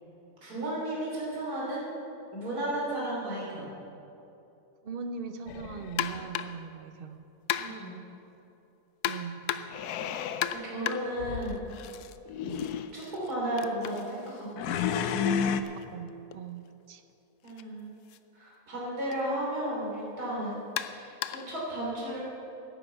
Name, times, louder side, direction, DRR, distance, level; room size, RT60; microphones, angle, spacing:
voice 1, 0.4-1.9 2.3-3.6 7.5-7.9 10.5-11.7 12.9-15.3 17.4-17.9 18.3-22.2, right 1 dB, 80° right, -5 dB, 3.8 m, -34 dB
voice 2, 4.8-7.2 9.0-9.5 12.4-12.6 15.9-17.0, right 5 dB, 50° right, 9 dB, 0.7 m, -40 dB
sound 1, 5.5-6.3 9.7-10.5 11.2-11.6 12.3-12.9 14.6-15.6, left 7 dB, 85° left, 1.2 m, -31 dB
sound 2, 6.0-6.7 7.5-8.0 9.0-9.9 10.4-12.2 12.5-16.4 17.4-17.6 18.1-18.2 19.1-19.2 20.8-21.6, left 10 dB, 65° left, 0.8 m, -36 dB
11.0 x 9.9 x 8.0 m, 2.9 s
omnidirectional pair, 1.6 m